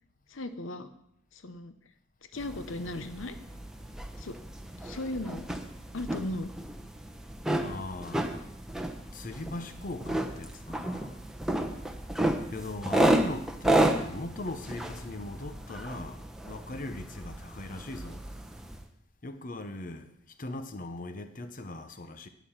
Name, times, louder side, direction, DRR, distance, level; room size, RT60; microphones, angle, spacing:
voice 1, 0.3-0.9 1.3-1.7 2.3-3.4 4.2-4.4 4.8-5.4 5.9-6.5, left 1 dB, 85° left, 0.8 m, -36 dB
sound 1, 2.4-18.8, right 1 dB, 5° right, 1.0 m, -32 dB
voice 2, 7.6-8.4 9.1-11.1 12.5-16.2 16.4-18.2 19.2-20.1 20.4-22.3, left 2 dB, 45° left, 0.9 m, -39 dB
11.5 x 9.3 x 5.7 m
head